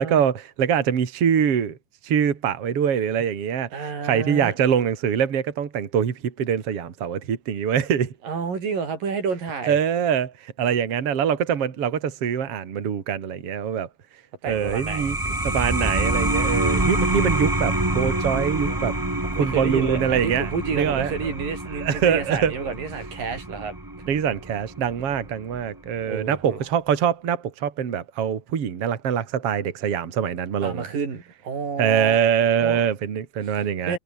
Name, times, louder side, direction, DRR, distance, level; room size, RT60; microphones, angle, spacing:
voice 1, 0.0-1.8 2.0-3.7 4.0-8.1 9.7-13.9 14.5-15.2 15.4-19.1 19.4-20.5 20.8-21.1 21.8-22.5 24.1-30.8 31.8-34.0, right 8 dB, 45° right, 3.1 m, -24 dB
voice 2, 3.7-4.5 8.2-9.8 14.4-15.1 18.6-18.8 19.2-23.7 26.0-26.6 30.6-32.2 32.6-32.8 33.4-34.0, right 5 dB, 80° right, 6.7 m, -30 dB
sound 1, 14.4-25.6, right 1 dB, 10° right, 1.4 m, -27 dB
omnidirectional pair, 3.9 m